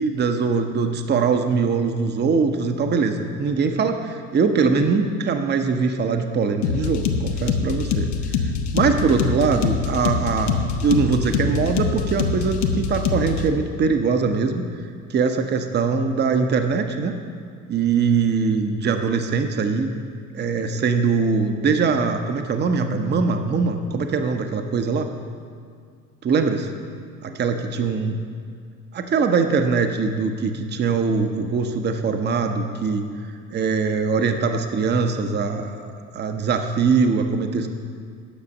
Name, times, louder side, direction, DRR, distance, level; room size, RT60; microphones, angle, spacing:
voice 1, 0.0-8.4 8.7-14.6 15.1-17.1 17.7-19.9 20.3-25.1 26.2-26.7 27.2-28.2 28.9-33.1 33.5-37.7, right 5 dB, 25° right, 6 dB, 0.8 m, -22 dB
sound 1, 6.6-13.5, left 5 dB, 60° left, 1.0 m, -24 dB
10.0 x 6.6 x 5.3 m, 2.1 s
hypercardioid pair, 70°, 43 cm